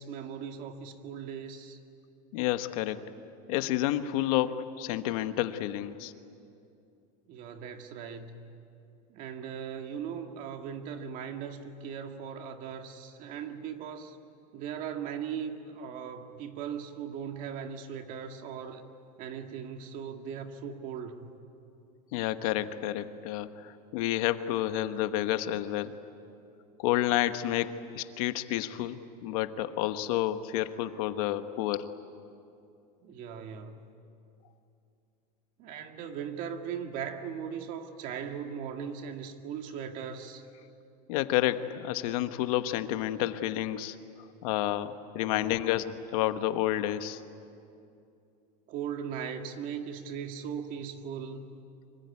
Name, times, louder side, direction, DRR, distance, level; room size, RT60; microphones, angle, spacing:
voice 1, 0.0-1.8 7.3-8.4 9.1-14.2 14.5-18.8 19.2-21.3 33.0-33.8 35.6-40.4 45.2-45.5 48.7-51.4, right 7 dB, 40° right, 5 dB, 2.0 m, -39 dB
voice 2, 2.3-3.1 3.5-6.1 22.1-26.0 26.8-31.9 41.1-44.0 44.4-47.2, left 13 dB, 60° left, 10 dB, 1.2 m, -30 dB
25.5 x 24.0 x 9.7 m, 2.6 s
supercardioid pair, 165°, 21 cm